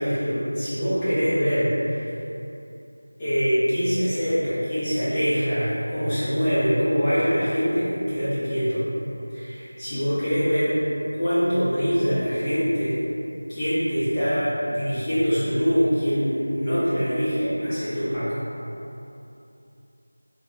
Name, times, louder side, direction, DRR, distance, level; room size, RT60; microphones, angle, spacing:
voice 1, 0.0-2.1 3.2-8.9 9.3-10.8 11.2-13.0 13.5-18.4, equal, 10° left, -16 dB, 0.5 m, -24 dB
3.6 x 2.9 x 3.0 m, 2.9 s
figure-of-eight pair, 175°, 0 cm